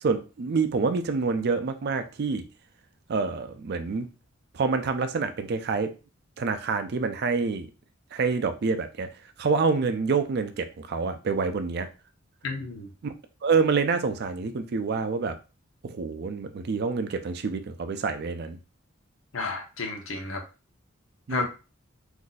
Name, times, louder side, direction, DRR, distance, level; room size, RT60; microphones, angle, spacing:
voice 1, 0.0-2.4 3.1-4.1 4.5-5.9 6.4-7.7 8.1-9.1 9.4-11.9 13.0-13.1 13.4-15.4 15.8-18.6 21.3-21.5, right 4 dB, 55° right, 0.4 m, -27 dB
voice 2, 12.4-12.9 19.3-20.4 21.3-21.5, left 3 dB, 70° left, 0.8 m, -31 dB
2.6 x 2.3 x 3.9 m
head